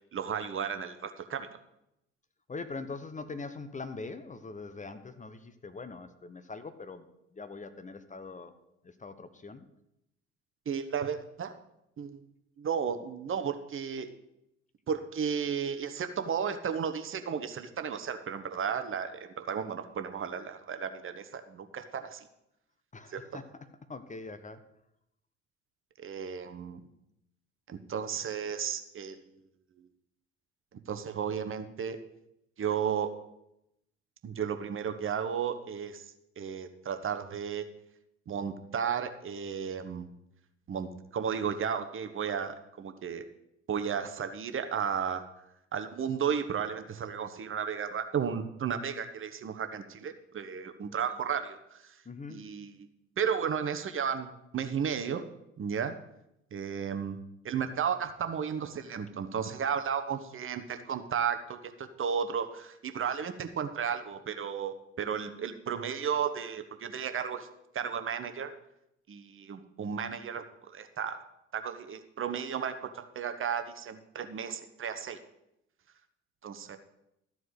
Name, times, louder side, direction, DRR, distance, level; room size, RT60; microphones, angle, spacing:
voice 1, 0.1-1.5 10.7-11.5 12.0-12.2 12.6-14.1 14.9-22.2 23.1-23.2 26.0-26.8 27.7-29.2 30.9-32.0 32.6-33.1 34.2-36.0 36.4-37.6 38.3-40.1 40.7-43.2 43.7-45.3 45.7-51.9 52.3-52.7 53.2-55.2 55.6-55.9 56.5-57.2 57.4-67.5 67.7-68.5 69.1-71.2 71.5-75.2 76.4-76.8, right 7 dB, 40° right, 8 dB, 1.1 m, -34 dB
voice 2, 2.5-7.1 7.3-8.5 8.8-9.6 22.9-23.5 23.9-24.6 52.0-52.5, left 3 dB, 20° left, 11 dB, 1.1 m, -42 dB
13.0 x 4.8 x 8.1 m, 0.82 s
figure-of-eight pair, 50°, 33 cm